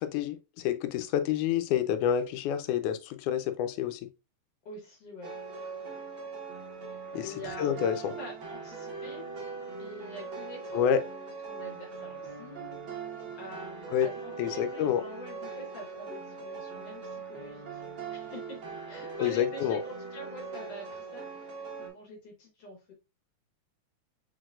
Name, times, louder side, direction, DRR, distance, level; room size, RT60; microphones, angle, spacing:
voice 1, 0.0-4.0 7.1-8.1 10.7-11.0 13.9-14.1 14.4-15.0 19.2-19.8, left 9 dB, 90° left, 2.1 m, -28 dB
voice 2, 4.7-5.3 7.2-9.2 9.8-13.0 13.4-17.8 18.1-18.6 18.9-22.9, left 1 dB, 60° left, 2.2 m, -46 dB
sound 1, 5.2-21.9, right 5 dB, 55° right, 1.7 m, -41 dB
4.9 x 3.9 x 2.4 m
omnidirectional pair, 3.4 m